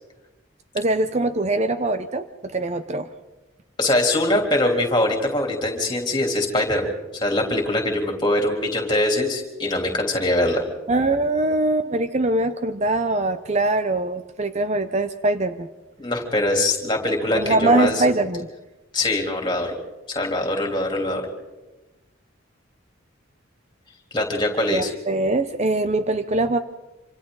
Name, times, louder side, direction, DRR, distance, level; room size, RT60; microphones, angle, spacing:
voice 1, 0.7-3.1 10.9-15.7 17.3-18.5 24.7-26.6, right 2 dB, 35° right, 11 dB, 0.6 m, -22 dB
voice 2, 3.8-10.6 16.0-18.0 18.9-19.7 20.1-21.3 24.1-24.9, left 1 dB, 20° left, 2 dB, 3.3 m, -22 dB
26.5 x 26.0 x 3.9 m, 1.1 s
head